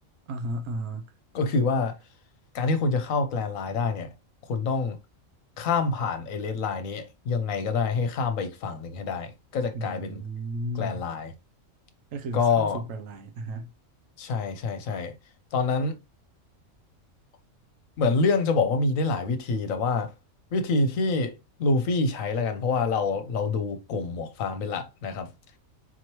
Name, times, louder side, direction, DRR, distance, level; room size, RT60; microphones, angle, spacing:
voice 1, 0.3-1.1 9.7-11.0 12.1-13.7, right 1 dB, 70° right, 1.0 m, -34 dB
voice 2, 1.3-1.9 2.5-4.1 4.5-5.0 5.6-10.2 10.8-11.3 12.3-12.8 14.2-15.1 15.5-15.9 18.0-20.1 20.5-21.3 21.6-25.3, left 4 dB, 75° left, 1.1 m, -26 dB
4.2 x 3.0 x 2.9 m
omnidirectional pair, 1.4 m